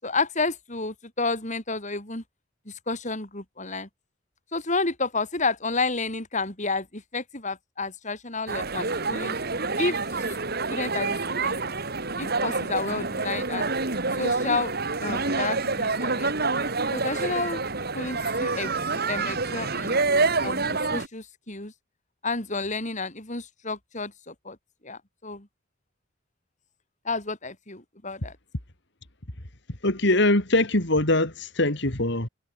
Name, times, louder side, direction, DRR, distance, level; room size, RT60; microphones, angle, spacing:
voice 1, 0.0-2.2 2.7-3.9 4.5-9.3 9.8-10.0 10.7-11.6 12.2-13.7 14.1-14.7 15.0-16.3 16.9-17.6 17.9-20.0 20.4-21.7 22.2-24.6 24.8-25.5 27.0-28.3, left 3 dB, 40° left, 5.9 m, -30 dB
sound 1, 8.5-21.1, right 3 dB, 50° right, 3.2 m, -27 dB
voice 2, 29.7-32.3, left 2 dB, 60° left, 3.7 m, -22 dB
head